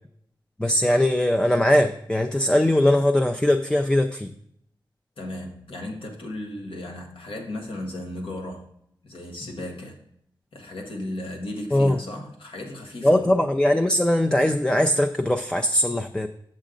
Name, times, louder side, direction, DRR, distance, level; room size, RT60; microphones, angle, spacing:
voice 1, 0.6-4.3 11.7-12.0 13.0-16.3, left 1 dB, 10° left, 6 dB, 0.4 m, -20 dB
voice 2, 5.2-8.7 9.0-10.0 10.5-13.4, left 1 dB, 85° left, 1 dB, 1.5 m, -35 dB
7.4 x 7.2 x 3.8 m, 0.71 s
wide cardioid pair, 85°, 9 cm